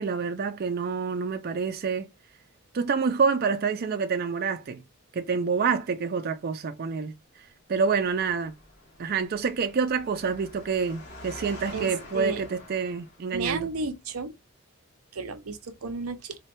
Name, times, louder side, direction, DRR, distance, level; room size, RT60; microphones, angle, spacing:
voice 1, 0.0-2.1 2.7-4.8 5.1-7.1 7.7-8.5 9.0-13.7, right 5 dB, 45° right, 0.4 m, -27 dB
Engine, 7.9-13.6, left 1 dB, 50° left, 1.7 m, -46 dB
voice 2, 11.7-12.4 13.3-14.3 15.1-16.4, right 4 dB, 90° right, 0.6 m, -33 dB
4.2 x 2.2 x 2.6 m
head